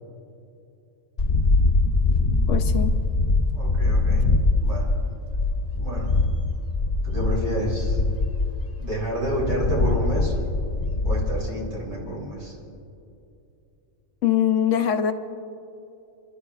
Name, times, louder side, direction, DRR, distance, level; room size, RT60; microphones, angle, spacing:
sound 1, 1.2-11.4, left 3 dB, 45° left, 1.0 m, -23 dB
voice 1, 2.5-3.0 14.2-15.1, left 9 dB, 65° left, 8 dB, 0.9 m, -22 dB
voice 2, 3.5-4.3 4.6-4.9 5.7-6.1 7.0-8.0 8.8-10.3 11.0-12.6, right 1 dB, 75° right, -4 dB, 3.7 m, -29 dB
30.0 x 12.0 x 2.4 m, 2.7 s
omnidirectional pair, 1.5 m